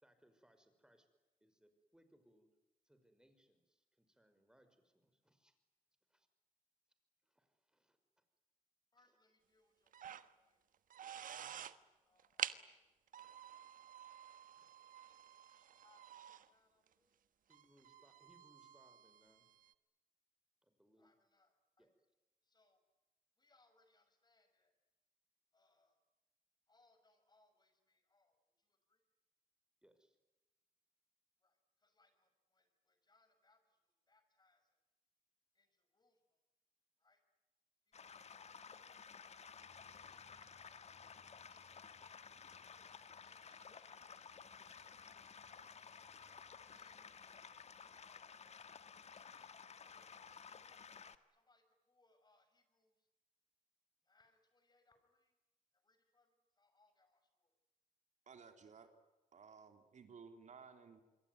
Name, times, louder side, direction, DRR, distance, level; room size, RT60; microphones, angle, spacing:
voice 1, 0.0-1.1 1.4-2.5 2.8-5.6 6.1-6.3 7.2-8.2 12.4-12.6 14.6-15.1 17.5-19.5 20.6-21.1 21.8-22.0 29.8-30.2 47.0-47.3, equal, 5° right, 9 dB, 5.5 m, -72 dB
voice 2, 8.9-10.6 11.0-12.5 15.0-15.1 15.5-17.2 21.0-21.9 22.4-22.8 23.4-24.7 25.5-26.0 26.7-29.0 31.4-34.8 35.5-36.4 37.0-37.2 37.9-39.0 39.9-41.0 41.4-42.1 42.7-44.7 45.7-45.9 46.7-47.0 47.7-48.5 49.1-50.2 51.3-53.1 54.0-55.3 55.7-57.5, left 3 dB, 30° left, 8 dB, 6.0 m, -76 dB
sound 1, 9.9-10.3 10.7-11.8 12.2-12.6 13.1-16.5 16.9-17.0 17.5-19.7, right 9 dB, 75° right, 1.3 m, -49 dB
sound 2, 37.9-51.2, left 6 dB, 50° left, 1.7 m, -55 dB
voice 3, 58.3-58.9 59.3-61.0, right 5 dB, 55° right, 6 dB, 3.4 m, -57 dB
27.0 x 22.5 x 9.5 m, 1.1 s
cardioid pair, 85°, 14 cm